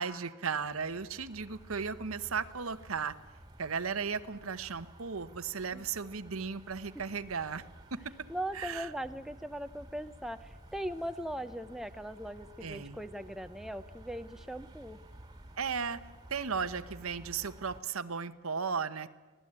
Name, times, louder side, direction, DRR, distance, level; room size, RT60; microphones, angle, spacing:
voice 1, 0.0-3.1 3.6-7.6 7.9-8.1 8.5-8.9 12.6-13.0 15.6-16.0 16.3-19.1, right 5 dB, 80° right, 12 dB, 1.1 m, -35 dB
sound 1, 0.6-17.8, right 1 dB, 20° right, 1.9 m, -53 dB
voice 2, 8.3-15.0, equal, ahead, 9 dB, 0.7 m, -39 dB
25.0 x 17.5 x 8.9 m, 1.3 s
head